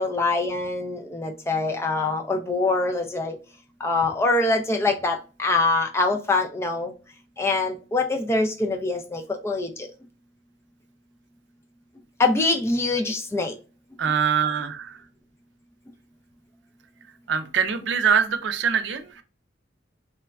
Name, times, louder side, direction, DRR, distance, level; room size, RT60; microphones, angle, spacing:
voice 1, 0.0-3.4 3.8-6.9 7.4-9.9 12.2-13.5, left 3 dB, 15° left, 0.4 m, -24 dB
voice 2, 14.0-15.0 17.3-19.0, right 7 dB, 65° right, 0.4 m, -23 dB
3.3 x 2.1 x 2.3 m
head